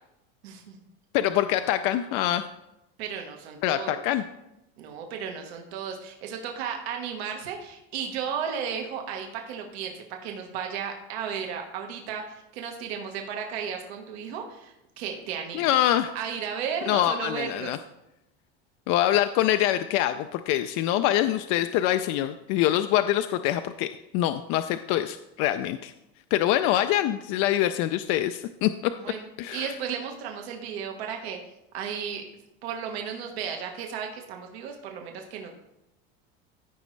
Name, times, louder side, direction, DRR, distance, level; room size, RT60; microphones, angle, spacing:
voice 1, 0.4-0.8 3.0-4.0 4.8-15.7 16.1-17.7 29.0-31.4 31.7-32.2 32.6-35.6, right 7 dB, 80° right, 2 dB, 1.4 m, -34 dB
voice 2, 1.1-2.4 3.6-4.2 15.5-16.1 16.9-17.8 18.9-23.9 24.1-25.9 26.3-28.9 29.4-29.7, left 13 dB, 50° left, 9 dB, 0.4 m, -24 dB
14.5 x 5.0 x 3.2 m, 0.88 s
supercardioid pair, 140°, 31 cm